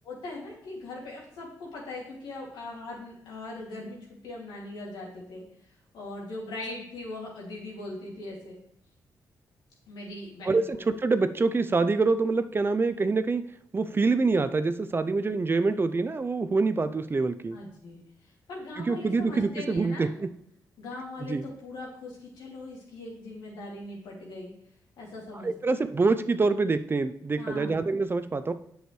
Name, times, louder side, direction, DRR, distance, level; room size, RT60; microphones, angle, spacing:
voice 1, 0.0-5.4 5.9-8.6 9.9-10.8 17.5-20.1 20.8-24.5 25.0-25.8 27.4-27.8, left 2 dB, 90° left, -3 dB, 2.4 m, -40 dB
voice 2, 10.4-13.4 13.7-17.6 18.8-20.3 21.2-21.5 25.4-28.5, right 3 dB, 30° right, 11 dB, 0.5 m, -26 dB
7.9 x 6.3 x 3.2 m, 0.72 s
cardioid pair, 65°, 7 cm